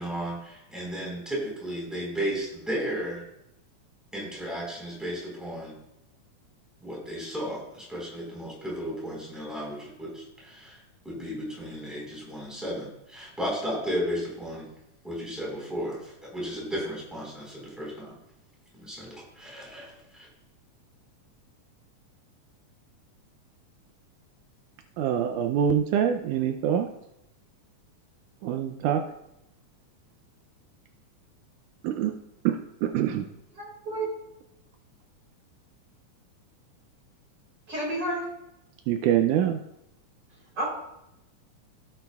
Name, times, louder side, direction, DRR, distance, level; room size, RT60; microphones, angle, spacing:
voice 1, 0.0-3.2 4.1-5.7 6.8-10.8 11.0-14.7 15.0-18.1 18.8-20.3, equal, ahead, -4 dB, 4.0 m, -34 dB
voice 2, 25.0-26.9 28.4-29.0 31.8-32.1 32.4-33.3 38.9-39.6, right 9 dB, 85° right, 5 dB, 2.1 m, -25 dB
voice 3, 33.6-34.1 37.7-38.2 40.6-40.7, right 1 dB, 35° right, -3 dB, 3.9 m, -30 dB
16.0 x 8.9 x 2.3 m, 0.85 s
omnidirectional pair, 3.5 m